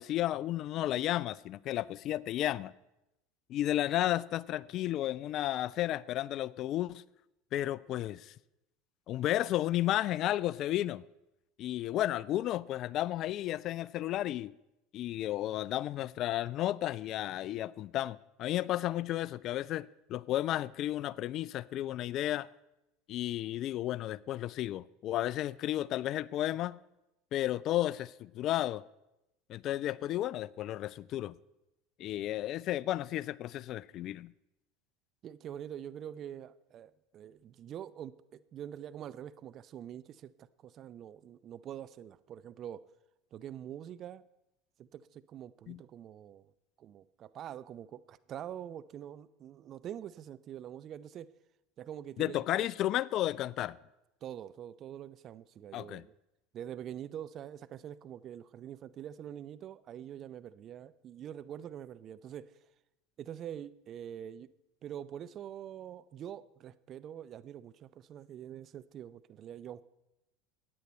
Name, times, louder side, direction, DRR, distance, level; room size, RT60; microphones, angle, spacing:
voice 1, 0.0-2.7 3.5-7.0 7.5-8.3 9.1-11.0 11.6-14.5 14.9-22.5 23.1-26.8 27.3-28.8 29.5-31.3 32.0-34.3 45.7-45.8 52.2-53.8 55.7-56.0, left 14 dB, 50° left, 0.3 m, -33 dB
voice 2, 35.2-42.8 43.3-44.2 44.8-46.5 46.8-51.3 51.8-52.7 54.2-56.1 56.5-62.5 63.2-64.5 64.8-69.8, right 10 dB, 45° right, 0.5 m, -45 dB
15.0 x 9.5 x 4.3 m
hypercardioid pair, 80°, 0 cm